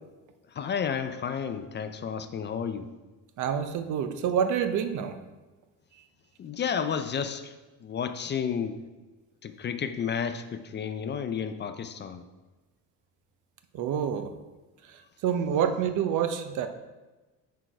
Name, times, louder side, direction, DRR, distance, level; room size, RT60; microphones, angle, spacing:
voice 1, 0.5-2.9 6.4-7.5 7.8-8.8 9.4-12.2, left 7 dB, 35° left, 9 dB, 0.4 m, -31 dB
voice 2, 3.4-5.2 13.7-14.3 15.2-16.7, right 8 dB, 60° right, 8 dB, 0.7 m, -27 dB
6.2 x 4.7 x 4.6 m, 1.2 s
cardioid pair, 105°, 34 cm